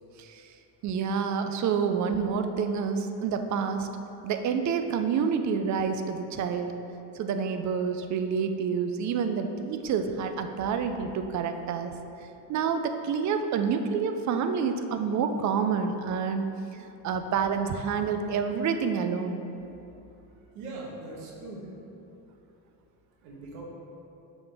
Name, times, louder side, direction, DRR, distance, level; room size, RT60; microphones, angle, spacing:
voice 1, 0.8-3.9 4.2-6.8 7.2-11.9 12.5-16.4 16.7-19.4, right 6 dB, 40° right, 7 dB, 0.4 m, -28 dB
voice 2, 20.5-21.7 22.4-22.5 23.2-23.6, right 2 dB, 80° right, -2 dB, 1.4 m, -41 dB
6.7 x 4.2 x 3.4 m, 2.9 s
cardioid pair, 110°, 45 cm